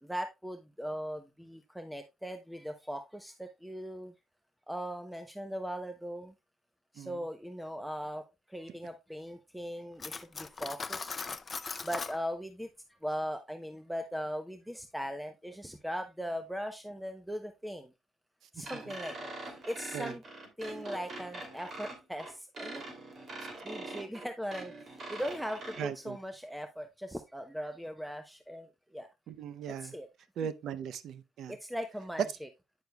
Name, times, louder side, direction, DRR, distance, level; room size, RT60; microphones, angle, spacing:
voice 1, 0.0-4.1 4.7-6.3 6.9-11.2 11.8-12.7 13.0-17.9 18.5-20.2 20.6-22.9 23.6-29.1 29.8-30.1 31.5-32.5, equal, 5° right, 0.7 m, -39 dB
Cutlery silverware, 10.0-12.2, left 4 dB, 35° left, 0.5 m, -39 dB
sound 1, 18.6-25.8, right 2 dB, 50° right, 2.8 m, -43 dB
voice 2, 25.8-26.2 29.3-29.9 30.4-31.5, right 8 dB, 75° right, 0.6 m, -39 dB
9.5 x 6.6 x 2.3 m
cardioid pair, 90°, 0 cm